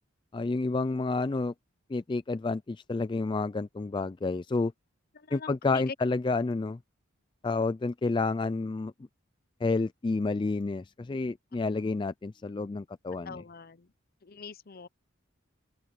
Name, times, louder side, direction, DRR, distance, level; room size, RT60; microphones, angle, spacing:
voice 1, 0.3-1.5 1.9-4.7 5.3-6.8 7.4-8.9 9.6-13.4, left 3 dB, 25° left, 0.3 m, -30 dB
voice 2, 5.1-5.9 13.2-13.9 14.2-14.9, left 5 dB, 45° left, 0.7 m, -43 dB
open air
head